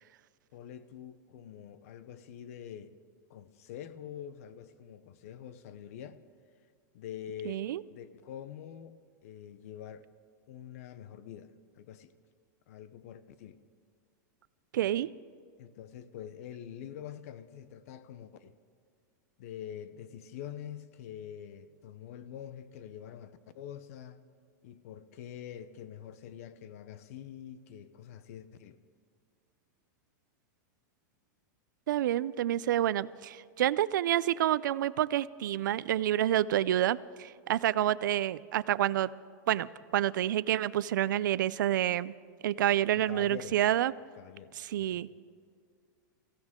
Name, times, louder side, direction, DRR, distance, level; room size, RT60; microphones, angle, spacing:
voice 1, 0.5-3.0 3.3-6.2 6.9-10.1 10.5-12.1 12.7-13.6 14.8-15.1 15.6-18.6 19.4-24.2 24.6-28.8 42.9-43.6 44.1-45.0, left 9 dB, 50° left, 0.7 m, -46 dB
voice 2, 7.5-7.8 14.7-15.1 31.9-39.1 39.5-42.1 42.4-43.9 44.6-45.1, right 12 dB, 85° right, 0.4 m, -28 dB
24.5 x 16.0 x 3.7 m
supercardioid pair, 170°, 10 cm